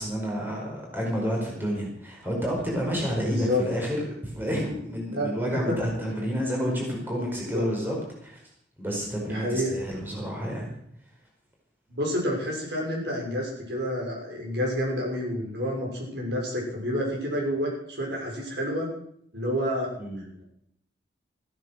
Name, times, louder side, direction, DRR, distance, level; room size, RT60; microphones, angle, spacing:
voice 1, 0.0-4.0 4.2-8.4 8.8-10.7 20.0-20.3, equal, 10° right, -2 dB, 5.1 m, -30 dB
voice 2, 3.2-3.6 5.1-5.3 5.7-5.8 7.3-7.7 9.3-9.8 11.9-18.9 19.3-19.9, equal, 75° right, -1 dB, 6.5 m, -29 dB
15.0 x 12.0 x 6.4 m, 0.69 s
head